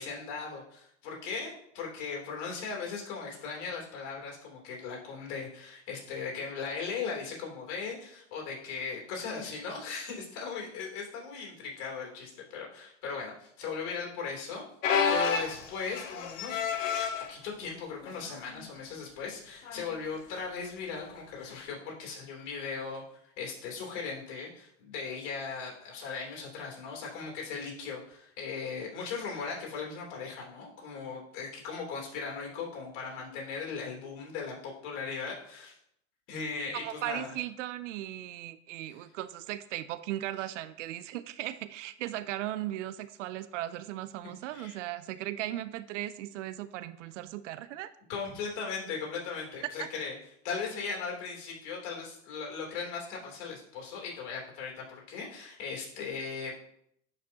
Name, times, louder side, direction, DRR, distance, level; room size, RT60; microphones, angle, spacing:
voice 1, 0.0-14.6 14.9-16.6 17.3-23.0 23.4-35.7 36.3-37.3 44.5-44.8 48.1-50.1 50.4-56.6, left 5 dB, 60° left, 0 dB, 3.1 m, -38 dB
sound 1, 14.8-17.3 18.0-18.3 18.6-18.7 19.7-19.9 21.5-21.6, left 6 dB, 80° left, 1.1 m, -30 dB
voice 2, 36.7-47.9 49.8-49.9, right 14 dB, 75° right, 14 dB, 0.6 m, -37 dB
11.0 x 5.0 x 2.8 m, 0.73 s
hypercardioid pair, 105°, 38 cm